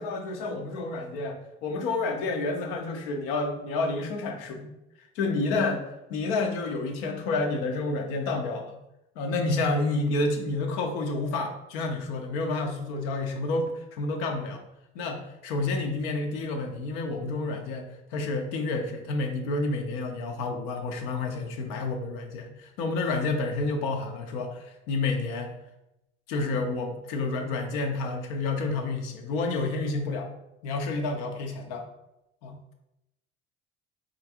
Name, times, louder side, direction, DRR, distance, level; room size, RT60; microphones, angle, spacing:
voice 1, 0.0-4.7 5.1-5.8 6.1-8.8 9.2-14.6 14.9-25.5 26.3-30.3 30.6-31.8 32.4-32.6, left 3 dB, 75° left, 4 dB, 0.7 m, -29 dB
4.4 x 2.5 x 2.8 m, 0.88 s
hypercardioid pair, 60°, 32 cm